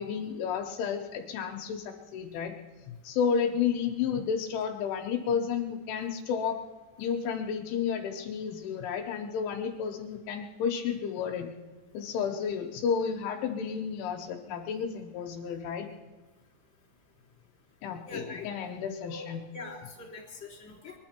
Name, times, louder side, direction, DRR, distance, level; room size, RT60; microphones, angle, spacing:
voice 1, 0.0-2.5 3.0-6.6 7.0-11.5 11.9-15.9 17.8-19.4, left 7 dB, 80° left, 3 dB, 3.4 m, -31 dB
voice 2, 18.1-18.5 19.1-19.3 19.5-20.9, left 3 dB, 15° left, -3 dB, 3.7 m, -43 dB
21.5 x 11.5 x 4.4 m, 1.3 s
omnidirectional pair, 5.6 m